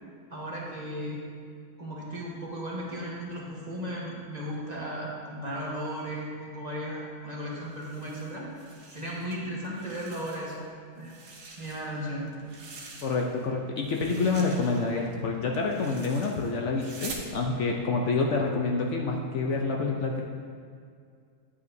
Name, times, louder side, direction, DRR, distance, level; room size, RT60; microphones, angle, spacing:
voice 1, 0.3-1.2 1.8-8.5 8.9-10.7 10.9-11.2 11.6-12.3, equal, 30° right, -5 dB, 1.3 m, -35 dB
sound 1, 7.6-9.3 9.6-10.7 11.0-13.5 13.8-17.3, right 3 dB, 65° right, 1.3 m, -46 dB
voice 2, 13.0-20.2, left 3 dB, 65° left, 0 dB, 0.9 m, -27 dB
9.7 x 8.1 x 2.6 m, 2.2 s
omnidirectional pair, 1.5 m